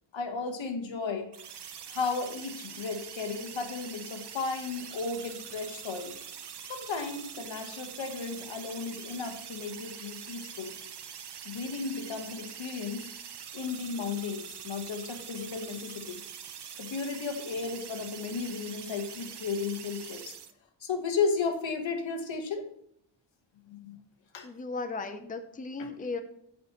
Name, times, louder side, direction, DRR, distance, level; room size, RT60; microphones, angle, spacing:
voice 1, 0.1-1.3 1.9-6.1 6.7-10.7 11.4-13.1 13.5-16.2 16.8-20.4 20.8-22.7 23.7-24.0 24.3-24.5 25.8-25.9, left 5 dB, 75° left, 5 dB, 1.5 m, -34 dB
sound 1, 1.3-20.5, right 8 dB, 60° right, 0.8 m, -44 dB
voice 2, 24.4-26.2, left 3 dB, 20° left, 7 dB, 0.7 m, -36 dB
14.5 x 5.2 x 3.1 m, 0.73 s
wide cardioid pair, 135°, 46 cm